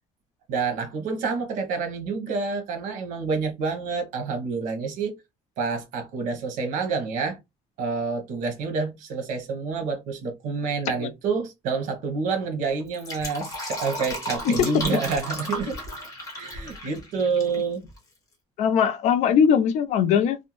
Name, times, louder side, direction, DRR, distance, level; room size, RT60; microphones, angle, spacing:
voice 1, 0.5-5.1 5.6-7.4 7.8-15.8 16.3-17.8, right 4 dB, 75° right, 0.9 m, -28 dB
Fill (with liquid), 12.8-17.6 17.9-18.0, left 1 dB, 25° left, 1.0 m, -34 dB
voice 2, 18.6-20.4, left 7 dB, 60° left, 0.4 m, -20 dB
2.6 x 2.1 x 2.9 m
cardioid pair, 180°, 13 cm